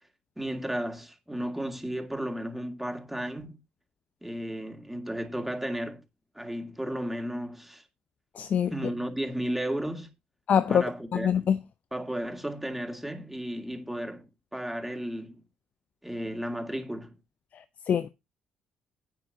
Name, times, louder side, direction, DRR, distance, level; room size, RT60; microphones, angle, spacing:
voice 1, 0.4-3.6 4.2-6.0 6.3-7.8 8.7-10.1 10.7-11.5 11.9-14.3 14.5-15.4 16.0-17.2, right 1 dB, 5° right, 2.3 m, -34 dB
voice 2, 8.4-8.7 10.5-10.8 11.1-11.6 17.9-18.1, left 8 dB, 50° left, 0.5 m, -24 dB
12.5 x 9.2 x 2.8 m
hypercardioid pair, 45°, 3 cm